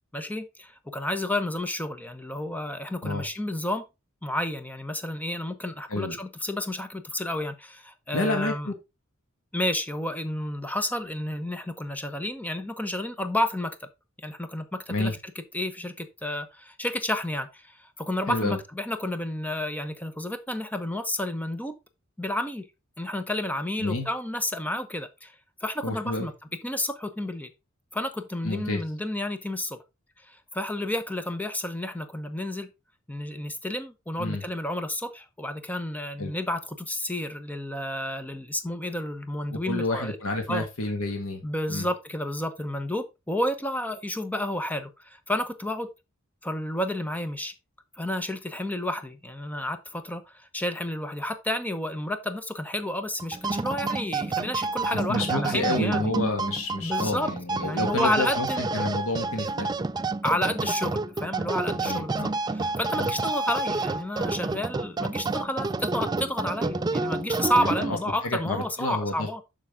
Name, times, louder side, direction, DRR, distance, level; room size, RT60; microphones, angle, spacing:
voice 1, 0.1-3.8 4.2-8.7 9.5-13.7 14.2-21.7 22.2-22.7 23.0-25.4 25.6-26.3 26.6-27.5 27.9-29.8 30.2-32.7 33.1-40.2 40.5-40.7 41.4-45.9 46.4-47.5 48.0-56.1 56.8-57.3 57.6-58.7 60.2-69.4, left 1 dB, 10° left, 0.9 m, -31 dB
voice 2, 8.1-8.7 14.9-15.1 18.3-18.6 23.8-24.1 25.8-26.3 28.4-28.8 34.2-34.4 36.2-36.3 39.5-41.4 41.7-41.9 55.1-59.7 61.8-62.3 63.0-63.1 67.6-68.0 68.2-69.3, left 2 dB, 80° left, 1.6 m, -29 dB
sound 1, 53.2-68.2, right 3 dB, 20° right, 0.3 m, -29 dB
7.1 x 6.4 x 3.6 m
head